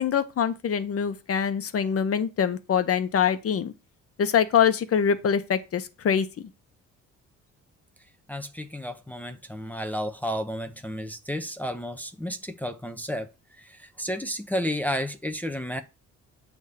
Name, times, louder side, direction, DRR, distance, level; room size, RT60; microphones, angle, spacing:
voice 1, 0.0-3.7 4.2-6.3, left 7 dB, 50° left, 1.0 m, -24 dB
voice 2, 8.3-13.3 13.6-15.8, equal, 5° left, 0.7 m, -32 dB
8.2 x 3.6 x 6.6 m
cardioid pair, 90°, 30 cm